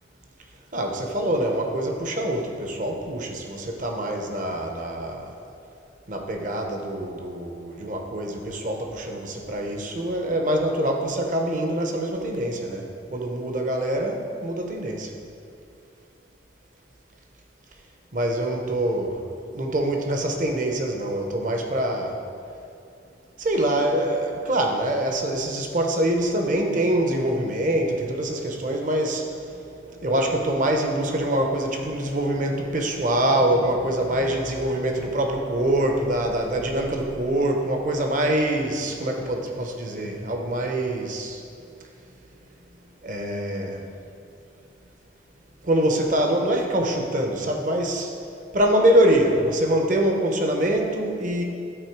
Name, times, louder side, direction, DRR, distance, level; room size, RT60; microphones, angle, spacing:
voice 1, 0.7-5.3 6.1-15.1 18.1-19.3 19.5-22.2 23.4-41.4 43.0-43.9 45.6-48.1 48.5-51.4, right 1 dB, 40° right, 2 dB, 0.8 m, -24 dB
12.5 x 4.3 x 4.6 m, 2.5 s
head